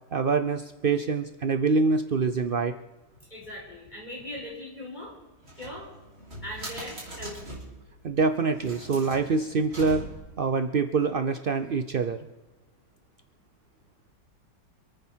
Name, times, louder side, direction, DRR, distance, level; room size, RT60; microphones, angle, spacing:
voice 1, 0.1-2.7 8.0-10.0 10.4-12.2, right 4 dB, 80° right, 9 dB, 0.4 m, -25 dB
voice 2, 3.3-5.1 5.5-5.9 6.4-7.6, left 1 dB, 25° left, -4 dB, 5.5 m, -40 dB
sound 1, 5.4-7.8 8.5-10.4, right 1 dB, 35° right, 4.7 m, -41 dB
27.5 x 9.3 x 4.5 m, 1.2 s
omnidirectional pair, 1.9 m